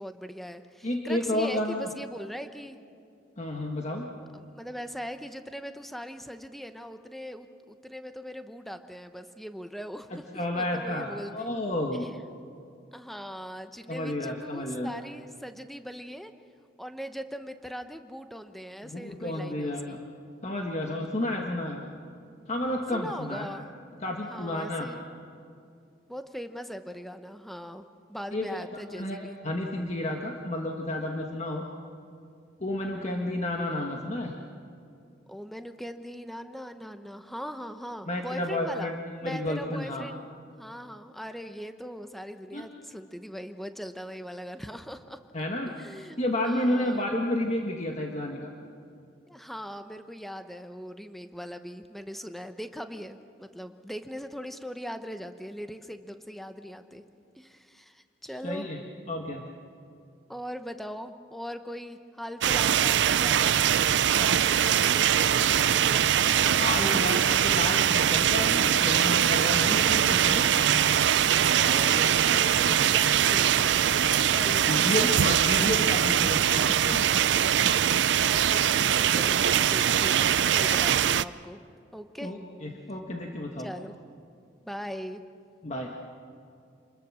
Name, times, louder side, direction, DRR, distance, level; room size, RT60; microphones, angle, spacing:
voice 1, 0.0-2.8 4.3-11.5 12.0-12.1 12.9-16.3 16.8-20.0 22.9-23.7 24.3-25.0 26.1-29.4 35.3-38.9 39.2-40.3 40.6-45.2 45.8-47.1 49.3-57.0 57.3-58.7 60.3-63.8 64.0-67.1 71.5-75.1 77.7-81.6 81.9-82.3 83.6-84.0 84.6-85.2, equal, ahead, 8 dB, 0.9 m, -40 dB
voice 2, 0.8-1.9 3.4-4.1 10.1-12.1 13.9-14.9 18.8-20.0 20.4-21.8 22.5-23.5 24.0-24.9 28.3-28.7 29.0-31.6 32.6-34.3 38.1-40.0 42.5-42.7 45.3-45.7 46.2-48.5 58.4-58.8 59.1-59.4 66.6-70.5 74.5-77.1 82.2-83.7 85.6-85.9, left 1 dB, 40° left, 1 dB, 1.6 m, -31 dB
sound 1, 62.4-81.2, right 9 dB, 75° right, 0.5 m, -22 dB
27.5 x 21.0 x 6.4 m, 2.4 s
head